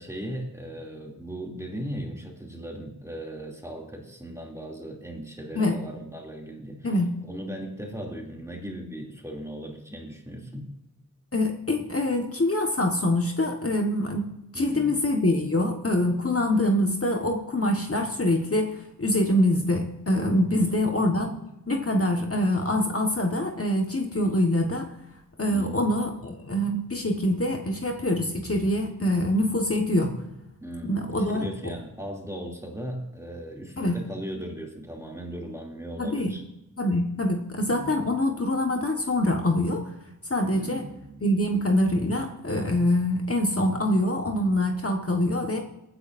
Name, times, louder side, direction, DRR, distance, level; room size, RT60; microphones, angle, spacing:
voice 1, 0.0-6.9 7.3-10.7 14.5-15.0 20.5-21.4 25.5-26.0 30.6-36.4 37.6-38.0 40.5-41.1, right 1 dB, 10° right, -1 dB, 2.8 m, -38 dB
voice 2, 6.8-7.2 11.3-21.3 21.7-24.9 25.4-30.1 30.8-31.7 33.8-34.0 36.0-36.3 36.8-39.8 40.3-40.8 41.2-45.6, left 1 dB, 45° left, 2 dB, 1.5 m, -25 dB
23.0 x 10.0 x 2.6 m, 0.89 s
wide cardioid pair, 70°, 33 cm